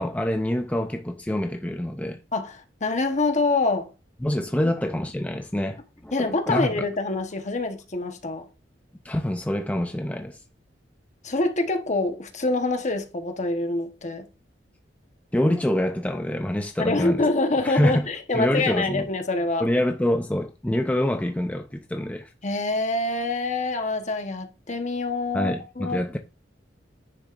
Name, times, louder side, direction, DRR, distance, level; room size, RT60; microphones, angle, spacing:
voice 1, 0.0-2.2 4.2-6.9 9.0-10.4 15.3-17.2 17.6-18.1 18.3-19.1 19.6-22.3 25.3-26.2, left 1 dB, 10° left, 0.5 m, -26 dB
voice 2, 2.3-3.9 6.1-8.5 11.2-14.3 16.8-19.7 22.4-26.0, left 2 dB, 40° left, 1.1 m, -25 dB
9.9 x 6.6 x 2.5 m
head